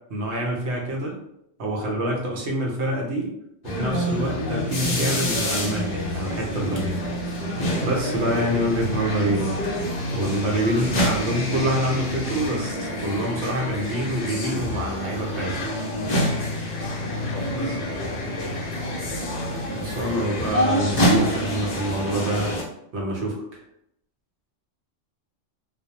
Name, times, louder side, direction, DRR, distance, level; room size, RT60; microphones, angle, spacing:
voice 1, 0.1-1.2 1.6-3.3 3.7-7.0 7.8-9.6 10.1-15.6 17.5-17.8 19.7-22.5 22.9-23.4, right 1 dB, 70° right, -1 dB, 0.9 m, -26 dB
sound 1, 3.6-22.6, equal, 55° left, 0.5 m, -27 dB
voice 2, 17.3-18.7, left 2 dB, 85° left, 1 dB, 1.0 m, -37 dB
2.3 x 2.0 x 2.8 m, 0.77 s
omnidirectional pair, 1.3 m